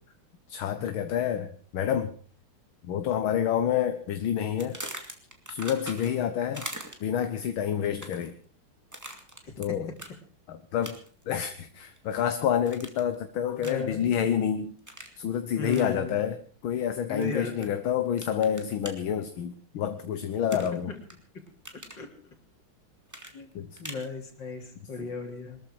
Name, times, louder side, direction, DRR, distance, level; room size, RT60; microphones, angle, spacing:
voice 1, 0.5-2.1 2.8-4.8 5.5-6.7 7.0-8.4 9.6-9.9 10.5-11.0 11.3-14.8 15.2-16.4 16.6-20.9 23.5-23.8 25.0-25.1, left 9 dB, 70° left, 9 dB, 1.8 m, -28 dB
sound 1, 4.6-6.2 6.5-7.2 7.8-8.3 8.9-9.7 10.0-10.1 10.8-11.2 11.6-12.3 12.7-13.1 13.6-13.9 14.9-15.2 15.7-15.9 17.2-17.7 18.2-18.9 20.5-21.1 21.5-22.0 23.1-24.1, right 1 dB, 10° right, 2.2 m, -41 dB
voice 2, 13.6-14.2 15.6-16.2 17.1-17.7 20.9-21.0 22.0-22.1 23.3-23.5 23.8-25.6, left 3 dB, 55° left, 3 dB, 3.8 m, -35 dB
22.5 x 13.5 x 4.8 m, 0.42 s
omnidirectional pair, 2.4 m